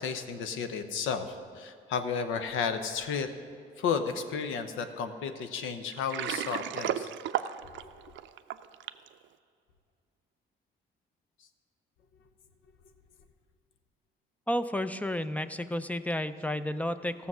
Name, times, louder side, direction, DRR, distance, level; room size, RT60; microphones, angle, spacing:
voice 1, 0.0-3.3 3.8-7.1, left 6 dB, 90° left, 8 dB, 0.9 m, -33 dB
Water, 5.9-9.1, right 11 dB, 70° right, 0.5 m, -34 dB
voice 2, 14.5-17.3, left 1 dB, 5° left, 12 dB, 0.5 m, -32 dB
16.0 x 7.0 x 6.1 m, 2.2 s
cardioid pair, 90°, 20 cm